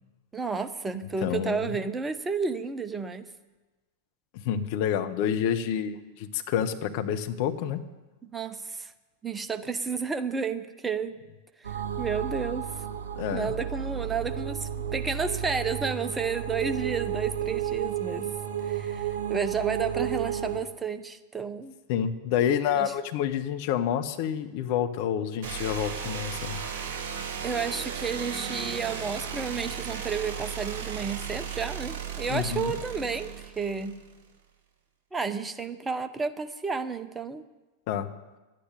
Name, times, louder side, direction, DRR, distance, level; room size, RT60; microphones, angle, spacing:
voice 1, 0.3-3.3 8.2-8.9 9.2-11.2 11.6-12.7 13.3-18.3 18.7-21.7 22.7-22.9 27.4-34.0 35.1-37.4, right 5 dB, 15° right, 9 dB, 0.8 m, -31 dB
voice 2, 1.2-1.7 4.3-7.8 13.2-13.5 21.9-26.6 32.3-32.7 37.9-38.1, left 9 dB, 45° left, 8 dB, 0.9 m, -28 dB
sound 1, 11.6-20.6, right 10 dB, 60° right, 2.4 m, -32 dB
sound 2, 25.4-34.2, right 7 dB, 45° right, 2.3 m, -35 dB
11.5 x 9.3 x 9.1 m, 1.2 s
figure-of-eight pair, 90°, 0 cm